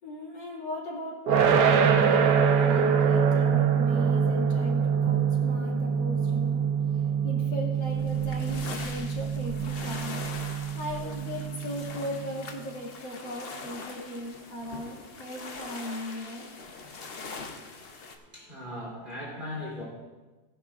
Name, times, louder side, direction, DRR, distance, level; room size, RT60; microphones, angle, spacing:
voice 1, 0.0-6.6 7.2-10.2 10.8-16.4, left 1 dB, 75° left, -3 dB, 3.2 m, -38 dB
sound 1, 1.3-12.2, right 6 dB, 70° right, 1.4 m, -25 dB
sound 2, 7.8-18.2, left 4 dB, 45° left, 0.9 m, -42 dB
voice 2, 18.0-19.8, left 1 dB, 25° right, -5 dB, 3.3 m, -39 dB
17.5 x 10.5 x 2.5 m, 1.2 s
omnidirectional pair, 2.0 m